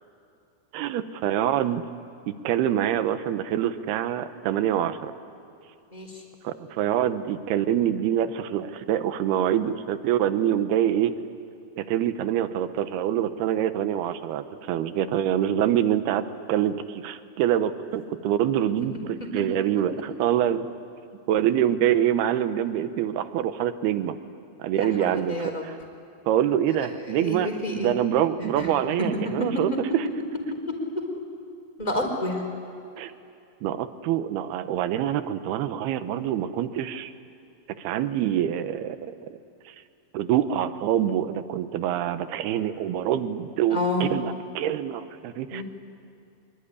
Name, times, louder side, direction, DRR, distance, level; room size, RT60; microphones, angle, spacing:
voice 1, 0.7-1.8 2.3-5.1 6.4-11.1 11.8-16.2 16.5-20.7 21.3-24.2 24.6-25.8 26.3-30.1 33.0-33.1 33.6-37.1 37.8-39.0 39.7-39.8 40.1-45.6, right 10 dB, 85° right, 11 dB, 3.0 m, -25 dB
voice 2, 24.7-25.6 27.2-27.9 28.4-28.7 31.8-32.4 43.7-44.1 45.5-45.6, left 1 dB, 10° left, 2 dB, 4.1 m, -29 dB
25.0 x 23.0 x 10.0 m, 2.6 s
omnidirectional pair, 4.5 m